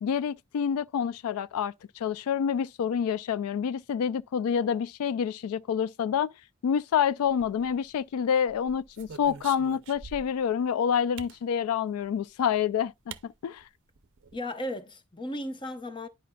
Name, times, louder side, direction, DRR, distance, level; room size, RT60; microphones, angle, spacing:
voice 1, 0.0-6.3 6.6-13.6, left 8 dB, 80° left, 0.3 m, -28 dB
sound 1, 7.3-8.0 8.5-10.5 11.2-11.4 12.5-12.6 13.1-13.3 13.6-13.7 14.0-14.4, right 6 dB, 55° right, 0.5 m, -45 dB
voice 2, 14.3-16.1, left 1 dB, 20° left, 0.7 m, -35 dB
11.0 x 5.1 x 2.2 m
head